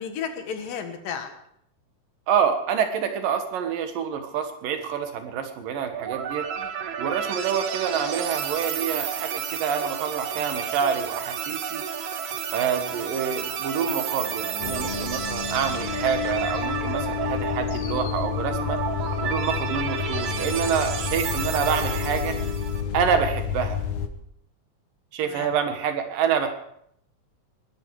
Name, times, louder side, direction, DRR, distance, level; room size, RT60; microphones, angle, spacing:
voice 1, 0.0-1.3 6.6-6.7 22.8-23.0 25.2-25.5, left 7 dB, 85° left, 7 dB, 3.3 m, -34 dB
voice 2, 2.3-6.5 7.0-11.8 12.5-18.8 19.2-22.3 22.9-23.8 25.1-26.5, right 7 dB, 80° right, 7 dB, 3.2 m, -27 dB
sound 1, 5.9-22.8, right 8 dB, 65° right, 2.4 m, -31 dB
sound 2, 14.6-24.1, left 8 dB, 65° left, 2.1 m, -30 dB
20.5 x 12.5 x 4.8 m, 0.72 s
omnidirectional pair, 3.8 m